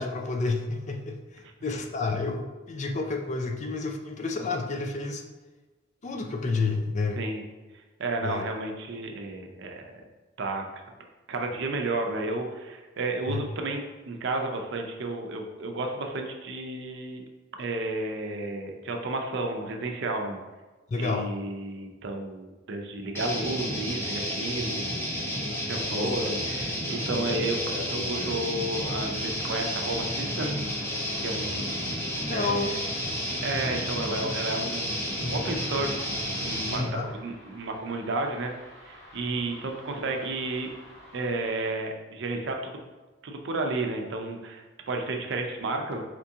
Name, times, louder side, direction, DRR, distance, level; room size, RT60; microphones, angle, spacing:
voice 1, 0.0-5.2 6.0-7.2 8.2-8.4 13.3-13.4 20.9-21.3 32.3-32.8 36.7-37.1, left 3 dB, 35° left, 3 dB, 0.4 m, -30 dB
voice 2, 8.0-10.0 10.4-10.8 11.3-17.2 17.6-20.4 21.0-25.0 25.3-27.6 27.9-30.5 31.2-32.0 32.3-32.8 33.4-36.0 36.4-38.5 38.8-40.7 41.1-42.8 43.2-46.0, right 2 dB, 65° right, 3 dB, 0.6 m, -32 dB
sound 1, 23.1-36.9, equal, 15° left, 0.7 m, -31 dB
ringroad-traffic, 25.6-41.7, left 1 dB, 80° left, 1.5 m, -44 dB
4.3 x 2.8 x 3.6 m, 1.2 s
head